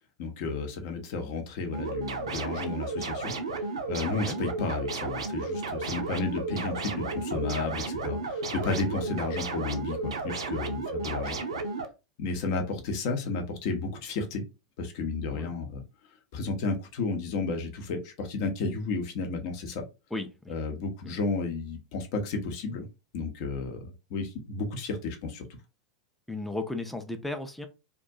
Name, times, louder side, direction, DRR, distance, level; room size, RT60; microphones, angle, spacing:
voice 1, 0.2-3.3 3.9-11.4 12.2-14.4 14.8-15.8 16.3-19.8 20.5-22.9 23.1-25.5, left 3 dB, 50° left, 0.7 m, -32 dB
sound 1, 1.7-11.9, right 3 dB, 70° right, 0.4 m, -33 dB
voice 2, 20.1-20.6 21.0-21.2 26.3-27.7, left 2 dB, 5° left, 0.4 m, -35 dB
2.4 x 2.1 x 2.6 m
figure-of-eight pair, 85°, 3 cm